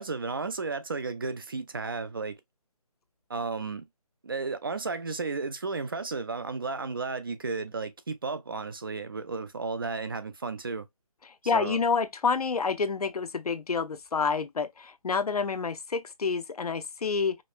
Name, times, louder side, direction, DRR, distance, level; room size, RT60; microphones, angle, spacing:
voice 1, 0.0-2.4 3.3-3.8 4.2-10.9 11.5-11.8, right 4 dB, 35° right, 0.4 m, -33 dB
voice 2, 11.5-17.4, left 5 dB, 80° left, 0.7 m, -28 dB
5.1 x 2.2 x 2.6 m
hypercardioid pair, 165°, 19 cm